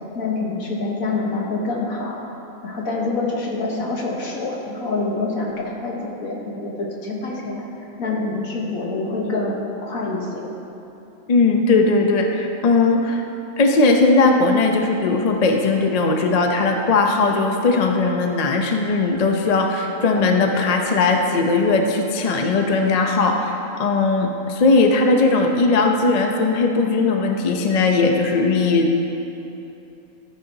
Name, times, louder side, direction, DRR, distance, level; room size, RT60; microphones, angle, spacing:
voice 1, 0.2-2.2 2.6-7.7 8.0-10.5, left 3 dB, 75° left, -2 dB, 1.7 m, -26 dB
voice 2, 11.3-13.2 13.6-29.0, left 3 dB, 40° left, 3 dB, 0.5 m, -18 dB
13.5 x 8.6 x 2.8 m, 2.9 s
omnidirectional pair, 1.5 m